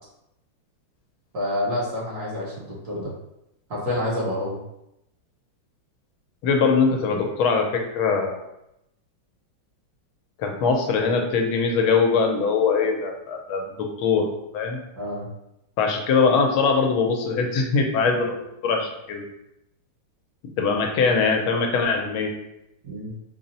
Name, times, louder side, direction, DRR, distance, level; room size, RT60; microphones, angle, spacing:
voice 1, 1.3-3.1 3.7-4.6 14.9-15.3 22.8-23.1, left 1 dB, 55° right, -6 dB, 1.4 m, -28 dB
voice 2, 6.4-8.4 10.4-14.8 15.8-19.2 20.6-22.3, left 5 dB, 90° left, 2 dB, 1.5 m, -22 dB
4.1 x 2.0 x 3.9 m, 0.84 s
omnidirectional pair, 2.2 m